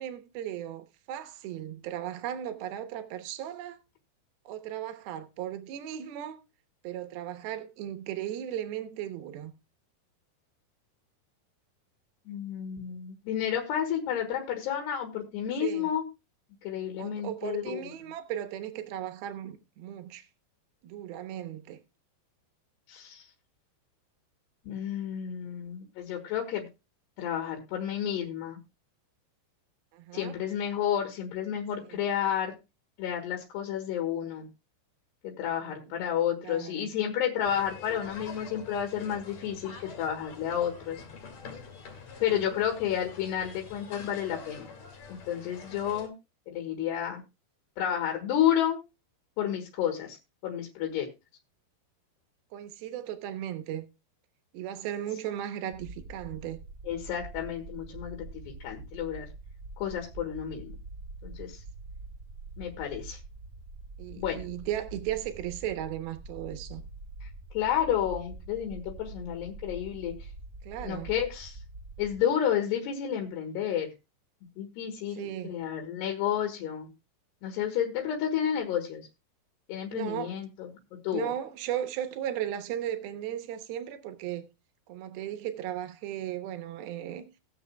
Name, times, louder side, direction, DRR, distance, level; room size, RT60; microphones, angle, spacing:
voice 1, 0.0-3.8 4.5-6.4 6.8-9.5 15.6-15.9 17.0-20.3 20.8-21.8 29.9-30.4 31.8-32.1 35.7-36.0 36.4-36.9 42.3-42.6 52.5-53.8 54.5-56.6 64.0-66.8 70.6-71.1 75.1-75.6 79.9-80.3 81.1-84.5 84.9-87.3, right 11 dB, 70° right, 2.7 m, -36 dB
voice 2, 12.3-16.0 16.6-17.9 22.9-23.3 24.7-26.7 27.2-28.6 30.1-32.6 33.0-34.5 35.2-41.0 42.2-44.7 45.1-46.1 46.5-47.2 47.8-48.8 49.4-50.2 50.4-51.1 56.9-59.3 59.8-60.8 61.2-61.6 62.6-63.2 64.2-64.4 67.2-67.3 67.5-70.3 70.8-71.6 72.0-73.9 74.6-76.9 77.4-79.1 79.7-80.7 81.0-81.3, left 9 dB, 80° left, 3.5 m, -31 dB
sound 1, 37.4-46.1, left 5 dB, 55° left, 3.3 m, -46 dB
sound 2, 55.7-72.2, right 2 dB, 25° right, 1.2 m, -45 dB
20.0 x 7.0 x 2.3 m
omnidirectional pair, 4.9 m